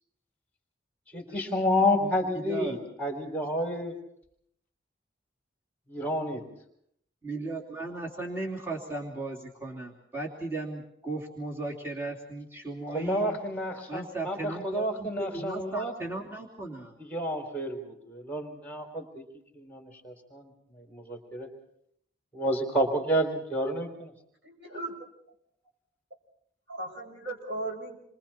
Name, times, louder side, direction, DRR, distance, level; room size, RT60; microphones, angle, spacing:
voice 1, 1.1-3.9 5.9-6.4 12.9-15.9 17.0-19.2 19.5-20.5 20.8-21.5 22.3-24.1, equal, 10° left, 2 dB, 4.0 m, -30 dB
voice 2, 2.3-2.8 3.4-3.5 7.2-13.4 13.9-17.0, right 2 dB, 15° right, -3 dB, 3.0 m, -36 dB
voice 3, 24.4-24.9 26.7-28.0, right 2 dB, 75° right, 1 dB, 7.3 m, -37 dB
29.0 x 24.0 x 4.4 m, 0.72 s
head